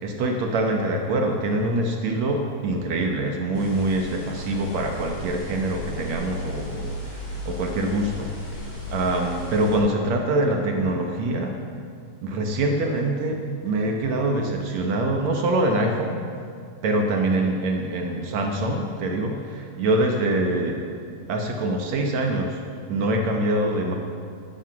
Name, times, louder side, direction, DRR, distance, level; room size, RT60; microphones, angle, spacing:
voice 1, 0.0-8.3 8.9-11.6 12.2-16.3 16.8-20.8 21.3-22.6 22.9-23.9, right 1 dB, 70° right, 2 dB, 1.8 m, -24 dB
sound 1, 3.5-9.8, left 1 dB, 40° left, 5.1 m, -35 dB
12.5 x 12.0 x 7.1 m, 2.3 s
omnidirectional pair, 4.5 m